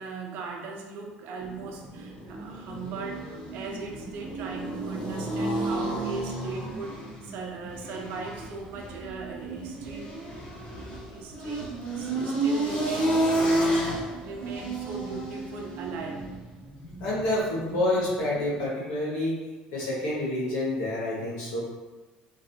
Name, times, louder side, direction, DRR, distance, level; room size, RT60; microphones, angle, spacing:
voice 1, 0.0-10.1 10.5-10.6 11.1-11.7 11.9-16.2, right 4 dB, 70° right, 1 dB, 0.6 m, -39 dB
sound 1, 1.4-18.7, right 1 dB, 40° left, 1.0 m, -31 dB
voice 2, 17.0-19.4 19.7-21.6, left 1 dB, 75° left, -6 dB, 1.3 m, -28 dB
3.2 x 2.5 x 2.7 m, 1.2 s
supercardioid pair, 90°, 3 cm